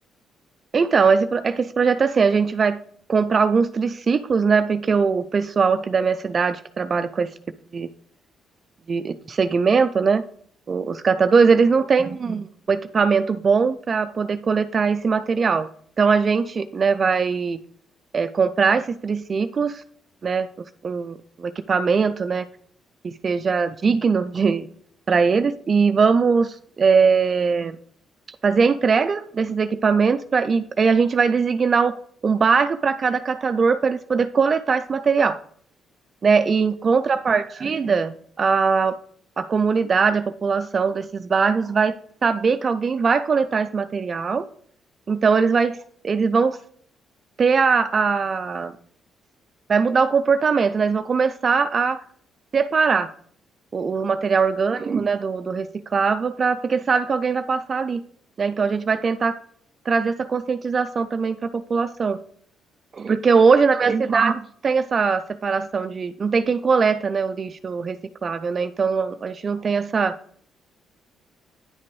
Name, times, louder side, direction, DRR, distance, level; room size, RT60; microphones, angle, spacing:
voice 1, 0.7-2.8 3.1-7.3 7.7-7.9 8.9-10.2 10.7-15.7 16.0-17.6 18.1-19.8 20.2-20.5 20.8-22.5 23.0-24.7 25.1-27.8 28.4-32.0 32.2-35.4 36.2-39.0 39.4-41.9 42.2-44.5 45.1-45.8 46.0-46.6 47.4-48.7 49.7-52.0 52.5-53.1 53.7-58.0 58.4-59.4 59.9-62.2 62.9-70.2, right 5 dB, 40° right, 10 dB, 0.3 m, -21 dB
10.0 x 5.8 x 3.1 m, 0.62 s
cardioid pair, 90°, 0 cm